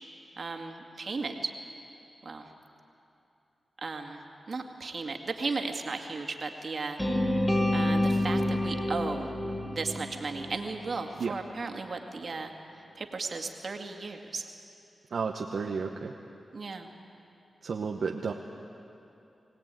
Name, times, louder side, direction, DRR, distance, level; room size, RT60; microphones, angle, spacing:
voice 1, 0.4-1.5 2.2-2.5 3.8-4.2 4.5-7.0 7.7-9.3 9.6-12.5 13.0-14.4 16.5-16.9, right 3 dB, 60° right, 3 dB, 2.1 m, -35 dB
sound 1, 7.0-11.1, left 1 dB, 25° left, 5.0 m, -28 dB
voice 2, 15.1-16.1 17.6-18.3, right 5 dB, 75° right, 2 dB, 1.0 m, -32 dB
22.0 x 17.5 x 9.1 m, 2.8 s
cardioid pair, 45°, 0 cm